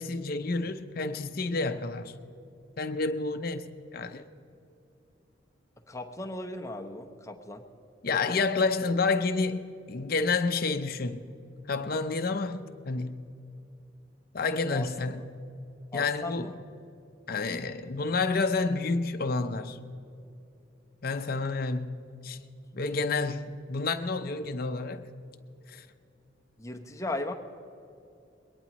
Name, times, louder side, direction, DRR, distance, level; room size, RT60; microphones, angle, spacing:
voice 1, 0.0-2.1 2.8-3.7 3.9-4.2 8.0-11.3 11.7-13.2 14.3-15.2 15.9-16.5 17.3-19.8 21.0-22.4 22.7-25.1 25.7-25.9, left 3 dB, 50° left, 0.7 m, -29 dB
voice 2, 5.9-7.6 14.7-14.9 15.9-16.5 26.6-27.3, left 2 dB, 15° left, 0.9 m, -36 dB
21.5 x 18.0 x 3.0 m
head